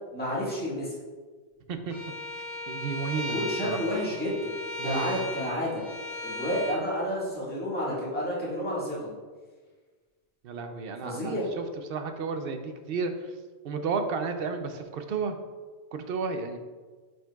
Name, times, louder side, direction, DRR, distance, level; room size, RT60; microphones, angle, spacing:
voice 1, 0.1-0.9 3.3-4.4 4.8-5.8 6.2-9.2 11.0-11.5, left 1 dB, 10° left, -8 dB, 1.7 m, -30 dB
Bowed string instrument, 1.9-6.8, left 1 dB, 75° left, 1.2 m, -36 dB
voice 2, 2.7-3.8 4.8-5.1 10.4-11.6 11.9-13.1 13.6-15.3 15.9-16.6, right 5 dB, 70° right, 7 dB, 0.8 m, -32 dB
8.8 x 5.2 x 2.3 m, 1.4 s
omnidirectional pair, 1.1 m